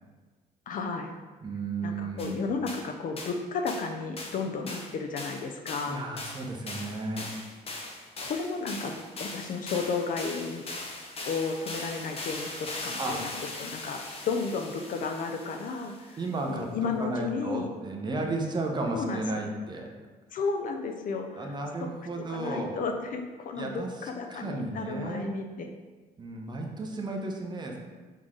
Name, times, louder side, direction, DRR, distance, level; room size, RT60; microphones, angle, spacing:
voice 1, 0.7-1.2 1.8-6.0 8.2-10.6 11.3-16.2 16.5-17.7 18.9-19.2 20.3-21.5 22.3-25.7, left 4 dB, 55° left, 5 dB, 0.6 m, -33 dB
voice 2, 1.4-2.4 5.9-7.3 13.0-13.3 16.2-16.7 17.0-19.9 21.4-22.8 23.5-25.4 26.2-27.8, right 2 dB, 25° right, 1 dB, 0.9 m, -33 dB
sound 1, 2.2-2.3 2.7-2.8 3.2-3.4 3.7-3.9 4.2-4.4 4.7-16.2, left 2 dB, 35° left, 1.0 m, -40 dB
6.4 x 3.9 x 3.7 m, 1.3 s
cardioid pair, 110°, 17 cm